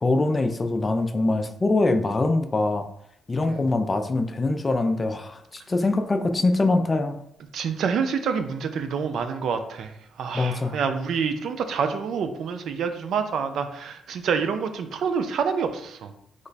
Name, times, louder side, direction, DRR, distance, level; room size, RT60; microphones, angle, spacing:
voice 1, 0.0-2.9 3.3-7.2 10.3-10.8, left 2 dB, 25° left, 8 dB, 0.3 m, -23 dB
voice 2, 7.5-9.9 10.2-16.1, right 6 dB, 70° right, 8 dB, 0.3 m, -27 dB
3.1 x 2.2 x 3.9 m, 0.73 s
cardioid pair, 90°, 0 cm